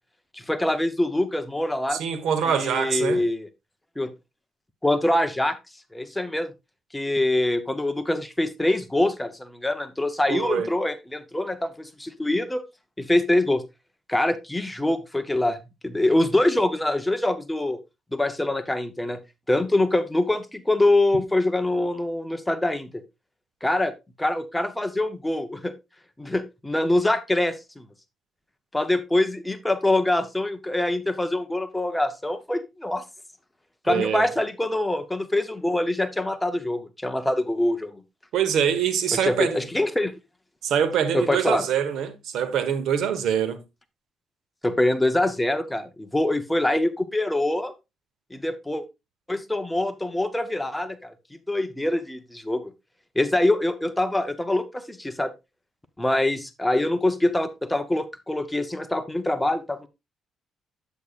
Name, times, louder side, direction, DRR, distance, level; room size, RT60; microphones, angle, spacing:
voice 1, 0.3-2.0 2.4-3.5 4.0-4.1 4.8-5.6 5.9-6.5 6.9-12.6 13.0-13.6 14.1-15.6 15.8-17.8 18.1-19.2 19.5-23.0 23.6-23.9 24.2-25.7 26.2-27.9 28.7-33.0 33.8-38.0 39.1-40.1 41.1-41.6 44.6-47.7 48.3-48.8 49.3-51.1 51.5-52.7 53.2-55.3 56.0-59.9, left 1 dB, 10° left, 0.8 m, -24 dB
voice 2, 1.9-3.2 10.3-10.7 33.9-34.2 38.3-39.6 40.6-43.6, right 8 dB, 75° right, 1.2 m, -24 dB
8.4 x 8.1 x 2.4 m
cardioid pair, 120°, 0 cm